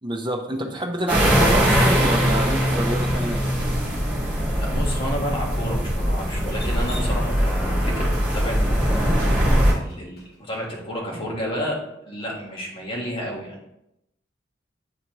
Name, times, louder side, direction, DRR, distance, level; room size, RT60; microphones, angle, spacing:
voice 1, 0.0-3.4, right 1 dB, 25° right, 2 dB, 0.8 m, -27 dB
sound 1, 1.1-9.7, equal, 10° right, 2.1 m, -21 dB
Bass guitar, 3.6-9.9, right 1 dB, 80° right, 0.7 m, -47 dB
voice 2, 4.6-11.8 12.1-13.7, equal, 30° left, -3 dB, 1.4 m, -31 dB
Drip, 6.5-10.6, equal, 55° left, 1.4 m, -40 dB
8.5 x 4.1 x 3.0 m, 0.85 s
head